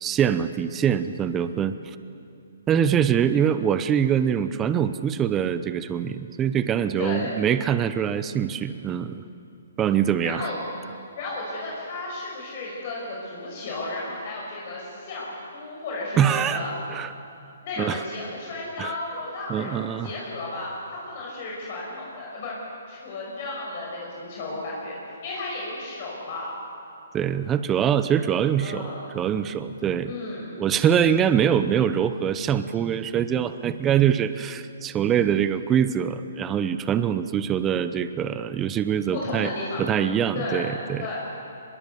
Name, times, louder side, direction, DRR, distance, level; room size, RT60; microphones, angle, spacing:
voice 1, 0.0-1.8 2.7-9.2 9.8-10.5 16.2-16.6 16.9-17.1 17.8-18.0 18.8-18.9 19.5-20.1 27.1-30.1 30.6-39.5 39.8-41.1, right 9 dB, 15° right, 12 dB, 0.8 m, -24 dB
voice 2, 7.0-7.4 10.2-10.6 11.2-16.7 17.6-22.5 22.9-26.6 28.6-29.2 30.0-30.5 39.1-39.9 40.3-41.3, left 2 dB, 45° left, -4 dB, 5.8 m, -33 dB
24.0 x 21.5 x 7.1 m, 2.6 s
hypercardioid pair, 150°, 0 cm